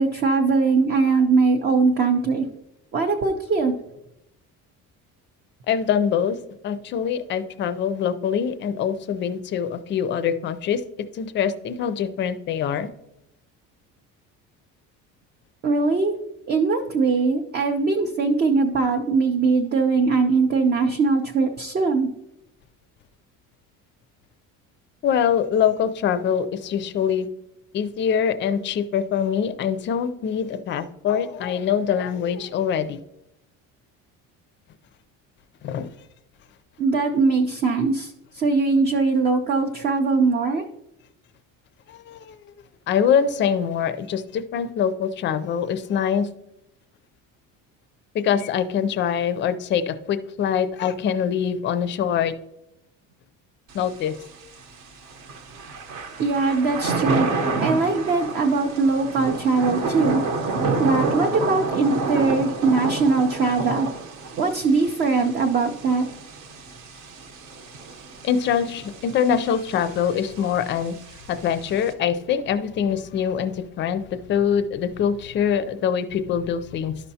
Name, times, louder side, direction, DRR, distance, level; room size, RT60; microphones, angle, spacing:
voice 1, 0.0-2.5 2.9-3.7 15.6-16.1 16.5-22.1 36.8-40.6 56.2-57.3 57.6-60.2 60.8-63.9 64.4-66.1, right 4 dB, 30° right, 4 dB, 0.5 m, -21 dB
voice 2, 5.7-6.4 6.6-10.8 11.2-12.9 25.0-27.3 27.7-33.0 35.6-35.9 41.9-42.4 42.9-46.3 48.1-52.3 53.7-54.1 62.4-62.5 68.2-70.9 71.3-77.0, left 8 dB, 35° left, 11 dB, 0.4 m, -24 dB
Thunder / Rain, 53.7-71.9, right 3 dB, 55° right, 0.9 m, -30 dB
12.5 x 5.6 x 2.7 m, 0.85 s
cardioid pair, 170°, 33 cm